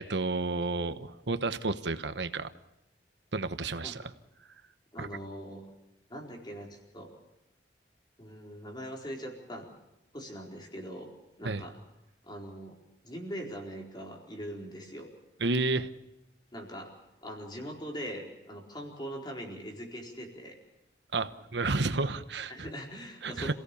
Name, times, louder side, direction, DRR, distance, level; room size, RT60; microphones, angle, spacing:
voice 1, 0.0-2.5 3.3-4.1 5.0-5.1 11.4-11.6 15.4-15.9 21.1-22.7 23.2-23.5, right 3 dB, 80° right, 11 dB, 1.1 m, -31 dB
voice 2, 4.9-5.6 6.1-7.2 8.2-9.7 10.1-11.1 11.4-11.8 12.2-12.8 13.0-15.1 16.5-16.9 17.2-20.6 22.5-23.5, equal, 25° left, 0 dB, 4.4 m, -41 dB
28.0 x 17.0 x 6.9 m, 0.93 s
head